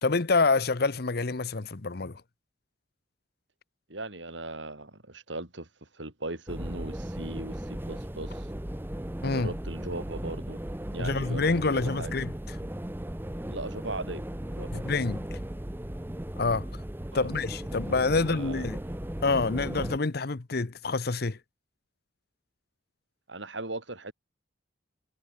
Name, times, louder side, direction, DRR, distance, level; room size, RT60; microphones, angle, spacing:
voice 1, 0.0-2.2 9.2-9.5 11.0-12.3 14.7-15.4 16.4-16.7 17.1-18.8 19.2-21.4, left 3 dB, 55° left, 0.9 m, -27 dB
voice 2, 3.9-8.5 9.2-10.6 10.9-12.1 13.5-14.9 17.1-17.3 18.1-19.0 23.3-24.1, right 2 dB, 70° right, 4.5 m, -39 dB
sound 1, 6.5-20.0, right 1 dB, 10° right, 0.8 m, -36 dB
head